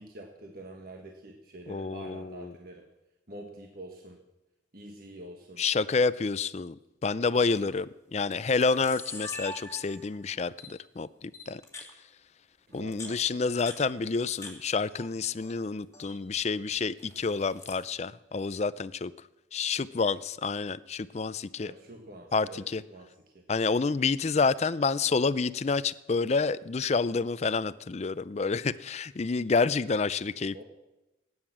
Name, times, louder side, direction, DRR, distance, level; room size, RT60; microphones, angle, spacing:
voice 1, 0.0-2.9 3.3-4.2 4.7-5.6 12.7-13.4 21.6-23.4 30.5-30.6, right 1 dB, 50° right, 2 dB, 1.5 m, -46 dB
voice 2, 1.7-2.5 5.6-6.8 7.0-11.6 12.7-19.1 19.5-21.7 22.3-22.8 23.5-30.6, left 4 dB, 35° left, 17 dB, 0.4 m, -28 dB
Camera, 7.4-7.7 8.3-8.4 8.6-10.2 10.6-10.7 11.3-11.9 12.7-14.5 14.8-15.5 15.8-16.2 17.0-17.8, left 2 dB, 15° left, 2.4 m, -43 dB
18.0 x 9.6 x 7.3 m, 0.99 s
head